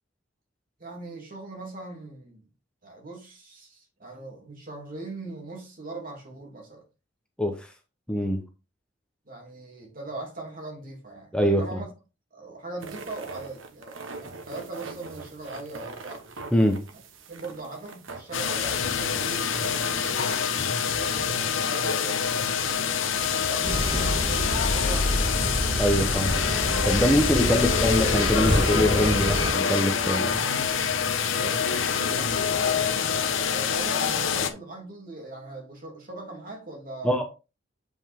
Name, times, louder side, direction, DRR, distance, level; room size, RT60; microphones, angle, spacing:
voice 1, 0.8-2.4 2.8-6.8 9.2-11.9 12.3-16.3 17.3-22.9 23.2-24.1 24.6-25.3 27.5-27.8 31.3-37.2, right 2 dB, 45° right, 2.8 m, -40 dB
voice 2, 7.4-7.7 8.1-8.4 11.3-11.8 16.5-16.8 25.8-26.4 26.8-30.4 37.0-37.2, equal, 5° left, 0.9 m, -24 dB
sound 1, 12.8-20.7, right 3 dB, 85° right, 1.2 m, -42 dB
sound 2, 18.3-34.5, left 7 dB, 80° left, 0.9 m, -26 dB
sound 3, 23.6-29.5, left 1 dB, 25° right, 2.2 m, -26 dB
7.8 x 5.3 x 3.6 m
head